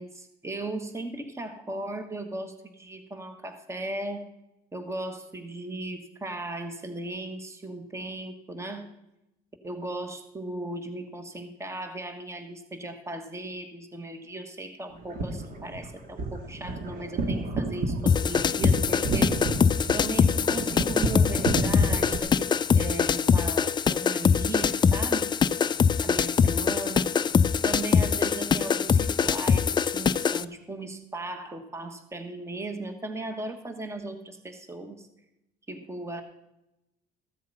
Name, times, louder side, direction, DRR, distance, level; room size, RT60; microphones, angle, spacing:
voice 1, 0.0-4.3 4.7-8.9 9.6-19.4 19.9-25.3 26.0-27.2 27.6-35.1 35.7-36.2, right 2 dB, 15° right, 7 dB, 1.3 m, -37 dB
sound 1, 15.0-22.2, right 2 dB, 55° right, 1.7 m, -31 dB
sound 2, 18.1-30.4, left 6 dB, 25° left, 0.4 m, -23 dB
14.5 x 7.6 x 5.4 m, 0.90 s
cardioid pair, 110°, 17 cm